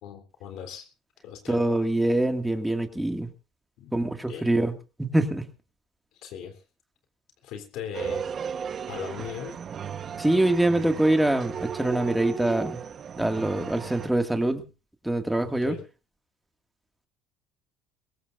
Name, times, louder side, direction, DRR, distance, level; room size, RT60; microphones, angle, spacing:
voice 1, 0.0-0.9 1.2-1.6 3.8-4.0 4.3-4.5 6.2-6.6 7.4-8.3 8.9-9.6 15.4-15.8, left 8 dB, 70° left, 4 dB, 3.4 m, -38 dB
voice 2, 1.5-3.3 3.9-4.7 5.0-5.5 10.2-12.8 13.2-14.6 15.0-15.8, right 1 dB, 5° right, 5 dB, 2.1 m, -24 dB
sound 1, 7.9-14.1, right 7 dB, 40° right, 1.2 m, -35 dB
22.0 x 17.5 x 2.6 m, 0.32 s
cardioid pair, 115°, 0 cm